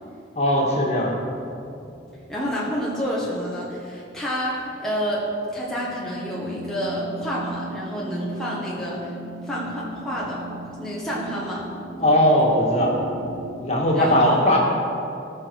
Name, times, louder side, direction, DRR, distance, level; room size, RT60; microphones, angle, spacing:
voice 1, 0.4-1.2 12.0-12.9 13.6-14.6, equal, 35° left, -2 dB, 2.0 m, -19 dB
sound 1, 1.4-3.8 4.1-13.8, right 1 dB, 60° right, 2.0 m, -39 dB
voice 2, 2.3-5.2 5.5-9.1 9.4-10.4 10.8-11.7 13.9-14.4, equal, 5° left, -7 dB, 1.5 m, -29 dB
18.5 x 6.3 x 4.8 m, 2.7 s
head